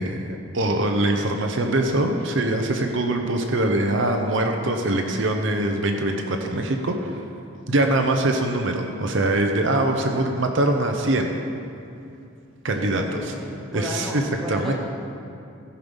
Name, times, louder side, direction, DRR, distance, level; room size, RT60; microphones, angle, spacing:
voice 1, 0.0-7.2 7.7-11.4 12.6-13.0 13.7-14.2 14.5-14.7, right 1 dB, 60° right, 3 dB, 0.7 m, -23 dB
voice 2, 12.7-14.7, left 1 dB, ahead, -5 dB, 1.4 m, -33 dB
15.0 x 5.7 x 5.3 m, 2.6 s
head